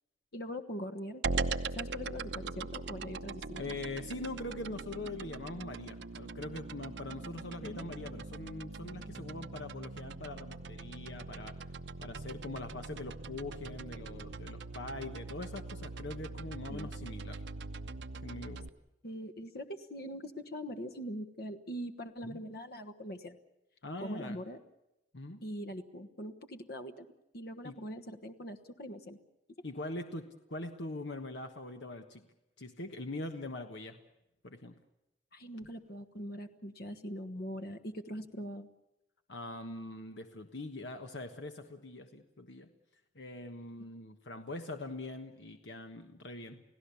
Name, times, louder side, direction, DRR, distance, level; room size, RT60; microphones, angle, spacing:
voice 1, 0.3-1.2 1.7-3.8 7.6-7.9 16.7-16.9 19.0-23.4 24.0-24.6 25.4-27.1 27.3-29.2 35.3-38.7, equal, 60° left, 9 dB, 1.3 m, -42 dB
sound 1, 1.2-18.7, right 3 dB, 75° right, 0.9 m, -41 dB
voice 2, 3.5-11.5 12.0-17.4 18.2-18.7 22.2-22.4 23.8-24.4 25.1-25.4 27.6-27.8 29.6-32.2 32.6-34.0 34.4-34.7 39.3-42.7 43.1-46.6, left 2 dB, 80° left, 6 dB, 1.4 m, -42 dB
30.0 x 16.5 x 7.1 m, 0.91 s
head